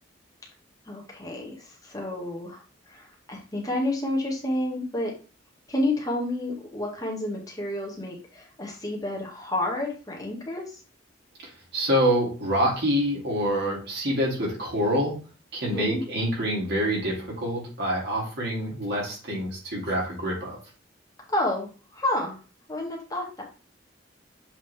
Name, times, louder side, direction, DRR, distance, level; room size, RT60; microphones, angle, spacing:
voice 1, 0.8-2.6 2.9-5.1 5.7-10.6 15.6-16.0 21.3-22.4 22.7-23.4, left 1 dB, 20° left, -2 dB, 1.6 m, -30 dB
voice 2, 11.4-15.2 15.5-20.6, equal, 60° right, -3 dB, 2.8 m, -26 dB
7.5 x 3.9 x 3.5 m, 0.35 s
head